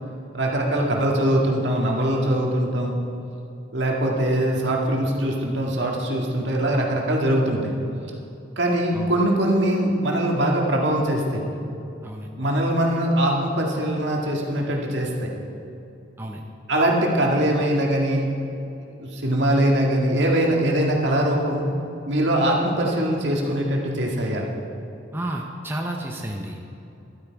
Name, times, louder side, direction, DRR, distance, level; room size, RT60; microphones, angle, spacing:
voice 1, 0.3-2.9 3.7-7.7 8.6-11.4 12.4-15.3 16.7-18.3 19.0-21.7 22.1-24.4, right 1 dB, 70° right, -1 dB, 2.0 m, -22 dB
voice 2, 12.0-12.5 16.2-16.4 25.1-26.6, right 1 dB, 10° right, 0 dB, 0.8 m, -31 dB
12.5 x 12.0 x 4.7 m, 2.7 s
head